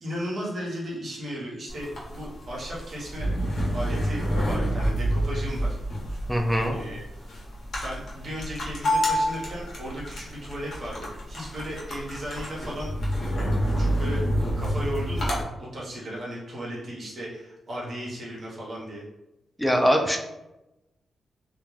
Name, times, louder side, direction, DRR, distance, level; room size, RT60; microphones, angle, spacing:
voice 1, 0.0-3.3 3.7-5.8 6.7-7.1 7.8-12.9 13.8-14.2 14.6-19.0, equal, 55° right, -5 dB, 0.9 m, -35 dB
sound 1, 1.7-15.4, equal, 60° left, 0.8 m, -28 dB
voice 2, 6.3-6.8 19.6-20.2, equal, ahead, 2 dB, 0.4 m, -22 dB
2.2 x 2.2 x 3.1 m, 0.95 s
cardioid pair, 65°, 0 cm